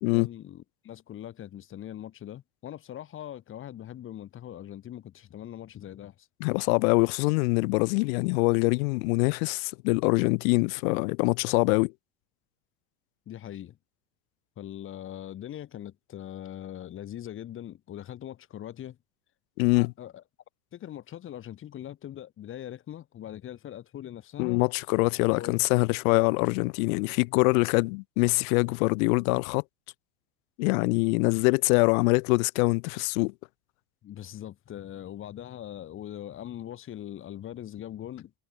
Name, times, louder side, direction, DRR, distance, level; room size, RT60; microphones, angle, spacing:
voice 1, 0.1-6.3 13.3-13.8 14.6-19.0 19.7-20.2 20.7-24.6 25.3-25.6 27.1-27.2 27.5-27.7 34.0-38.3, left 11 dB, 30° left, 1.0 m, -41 dB
voice 2, 6.4-11.9 19.6-19.9 24.4-29.6 30.6-33.3, left 28 dB, 85° left, 0.8 m, -24 dB
cardioid pair, 145°, 41 cm